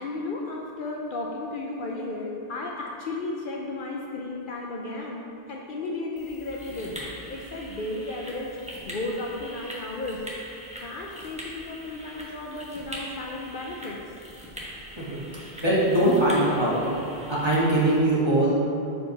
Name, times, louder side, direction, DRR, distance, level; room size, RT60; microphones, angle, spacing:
voice 1, 0.0-6.9 7.3-10.2 10.8-14.2, left 2 dB, 60° left, -1 dB, 0.7 m, -34 dB
sound 1, 6.2-18.0, equal, 5° right, 0.9 m, -42 dB
voice 2, 15.6-16.9 17.3-18.5, right 1 dB, 25° right, -8 dB, 1.5 m, -21 dB
6.3 x 4.6 x 4.0 m, 2.7 s
omnidirectional pair, 1.1 m